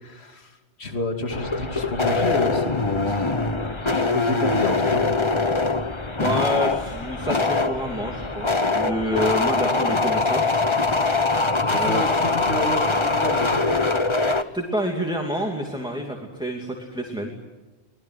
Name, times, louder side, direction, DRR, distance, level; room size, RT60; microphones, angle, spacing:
voice 1, 0.0-3.3 3.9-5.1 5.5-5.9 11.6-13.6, left 2 dB, 65° left, 4 dB, 2.9 m, -30 dB
sound 1, 1.3-14.4, left 3 dB, 25° left, 1.2 m, -23 dB
voice 2, 6.2-10.6 11.7-12.0 14.5-17.3, equal, 5° right, 1 dB, 2.8 m, -28 dB
25.0 x 21.0 x 9.6 m, 1.2 s
omnidirectional pair, 1.1 m